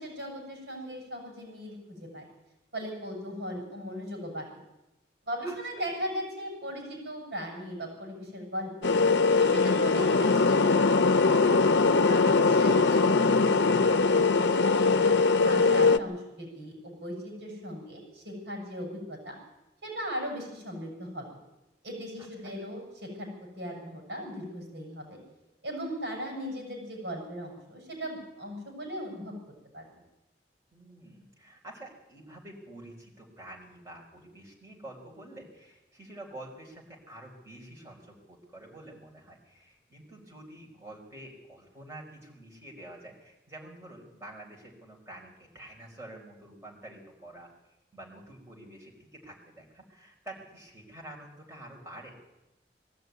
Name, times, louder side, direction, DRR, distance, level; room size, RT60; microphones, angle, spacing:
voice 1, 0.0-2.3 2.7-4.5 5.2-8.9 9.4-11.6 12.1-14.9 15.3-19.4 19.8-21.3 21.8-25.2 25.6-29.4 29.7-29.9, equal, 75° right, 1 dB, 7.4 m, -38 dB
voice 2, 5.4-5.8 12.3-12.9 22.4-22.5 30.7-47.5 47.9-52.2, right 1 dB, 15° right, -2 dB, 4.6 m, -48 dB
sound 1, 8.8-16.0, left 4 dB, 90° left, 0.7 m, -22 dB
21.0 x 13.5 x 9.4 m, 0.96 s
head